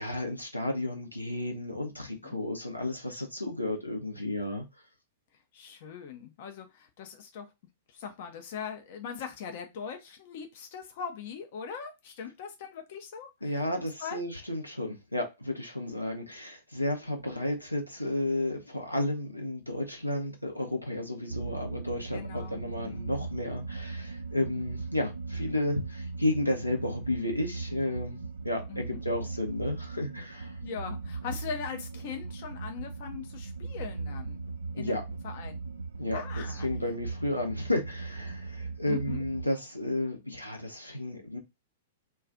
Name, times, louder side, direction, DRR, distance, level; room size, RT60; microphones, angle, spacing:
voice 1, 0.0-4.6 13.4-28.2 28.4-30.5 34.8-35.0 36.0-41.4, left 1 dB, 90° left, 0.7 m, -32 dB
voice 2, 2.0-2.4 5.5-7.5 7.9-14.2 22.1-23.1 28.7-28.8 30.6-34.4 34.7-35.6 36.1-36.7 38.9-39.2, left 7 dB, 45° left, 0.5 m, -41 dB
sound 1, 21.3-39.4, right 4 dB, 75° right, 0.4 m, -38 dB
2.4 x 2.3 x 3.7 m
figure-of-eight pair, 100°, 0 cm